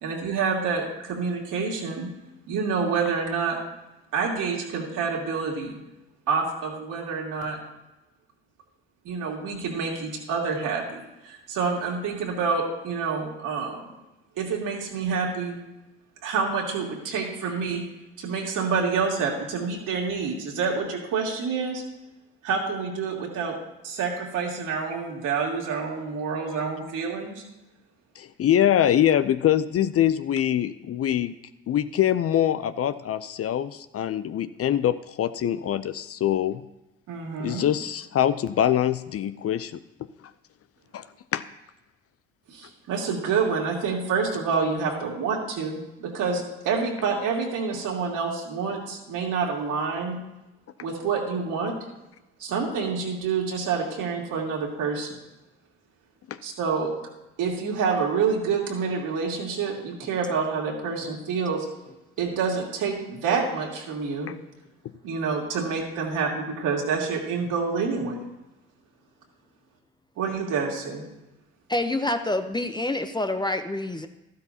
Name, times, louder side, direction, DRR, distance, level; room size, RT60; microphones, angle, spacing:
voice 1, 0.0-2.1 2.5-3.6 4.1-5.8 6.3-7.6 9.0-13.9 14.4-15.6 16.2-17.8 18.2-21.8 22.4-23.6 23.8-27.3 37.1-37.6 42.5-50.2 50.8-51.8 52.4-55.2 56.4-56.9 57.4-61.7 62.2-64.3 65.0-68.2 70.2-71.0, right 5 dB, 65° right, -2 dB, 2.9 m, -27 dB
voice 2, 28.2-31.3 31.7-36.6 37.4-39.8 40.9-41.1 41.3-41.4 56.3-56.4 64.3-64.4, left 10 dB, 45° left, 13 dB, 0.6 m, -24 dB
voice 3, 71.7-74.1, left 2 dB, 15° left, 7 dB, 0.8 m, -27 dB
13.0 x 12.0 x 2.9 m, 0.96 s
hypercardioid pair, 55°, 34 cm